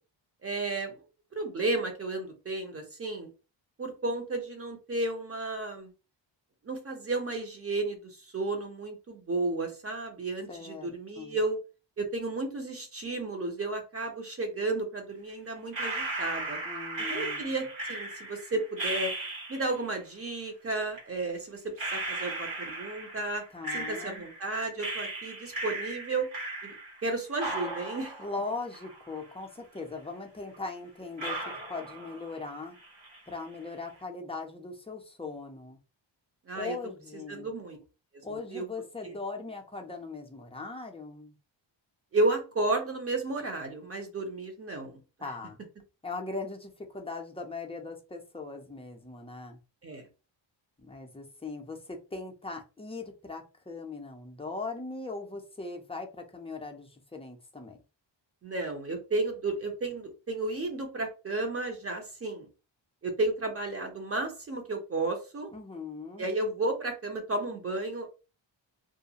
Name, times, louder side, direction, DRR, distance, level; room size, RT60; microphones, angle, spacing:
voice 1, 0.4-0.9 1.3-3.3 3.8-5.9 6.6-8.0 8.3-11.6 12.0-16.6 17.1-19.1 19.5-21.6 21.9-23.4 23.7-26.3 26.6-26.7 27.0-28.2 36.5-36.8 37.3-37.8 38.3-38.7 39.0-39.1 42.1-45.0 49.8-50.1 58.4-62.5 63.0-65.5 66.2-68.1, right 2 dB, 30° right, 0.6 m, -32 dB
voice 2, 10.5-10.9 11.2-11.4 16.6-17.6 23.5-24.3 28.2-31.4 31.7-32.8 33.3-35.8 36.5-37.5 38.2-41.3 45.2-45.6 46.0-49.6 50.8-57.8 65.5-66.3, left 3 dB, 15° left, 0.3 m, -39 dB
sound 1, 15.7-19.9 20.9-21.0 21.8-24.5 24.8-27.1 27.4-29.4 29.8-29.9 30.5-30.6 31.2-32.5 32.8-33.3, right 2 dB, 75° right, 1.3 m, -36 dB
2.5 x 2.3 x 2.8 m
wide cardioid pair, 170°, 47 cm